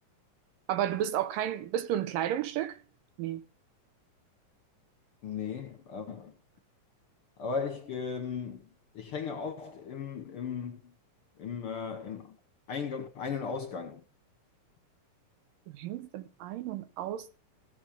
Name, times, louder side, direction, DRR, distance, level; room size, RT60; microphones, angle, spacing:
voice 1, 0.7-2.8 3.2-3.4 15.7-17.4, right 11 dB, 85° right, 2.7 m, -32 dB
voice 2, 5.2-6.3 7.4-8.7 8.9-10.9 11.4-12.4 12.7-14.0, left 6 dB, 65° left, 1.4 m, -36 dB
16.0 x 6.3 x 5.1 m
omnidirectional pair, 3.9 m